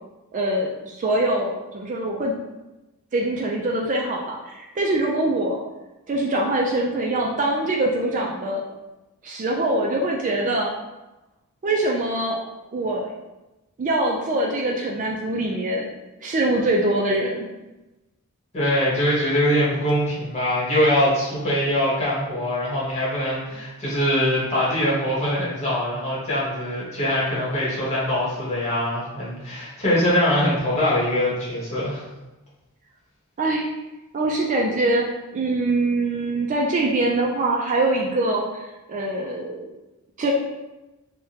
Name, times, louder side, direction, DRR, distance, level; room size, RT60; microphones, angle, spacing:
voice 1, 0.3-2.3 3.1-5.6 6.1-8.6 9.2-10.7 11.6-12.4 12.7-13.1 13.8-15.9 16.2-17.5 33.4-33.7 34.1-35.1 35.3-39.7 40.2-40.3, right 2 dB, 35° right, -1 dB, 0.3 m, -23 dB
voice 2, 18.5-32.0, equal, 30° left, -8 dB, 1.2 m, -23 dB
3.5 x 2.2 x 2.8 m, 1.0 s
head